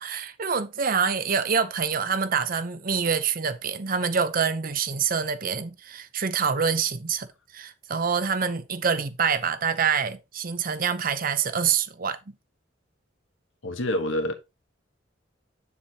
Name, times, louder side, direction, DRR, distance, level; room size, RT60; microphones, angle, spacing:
voice 1, 0.0-7.3 7.5-12.2, right 6 dB, 50° right, 0.7 m, -26 dB
voice 2, 13.6-14.3, left 1 dB, 90° left, 1.3 m, -26 dB
8.3 x 7.0 x 2.9 m
head